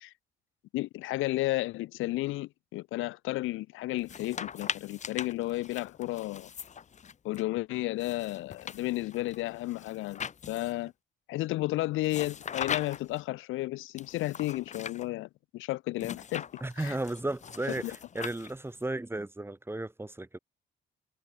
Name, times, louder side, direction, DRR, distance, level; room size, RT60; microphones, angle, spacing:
voice 1, 0.7-6.5 7.2-10.9 11.3-16.4 16.8-17.0 17.8-17.9, left 18 dB, 85° left, 0.5 m, -33 dB
sound 1, 4.0-7.4 8.0-10.9 12.1-13.2 14.0-15.1 16.0-18.8, left 7 dB, 35° left, 0.7 m, -41 dB
voice 2, 16.6-20.4, right 2 dB, 10° right, 2.4 m, -34 dB
cardioid pair, 90°, 20 cm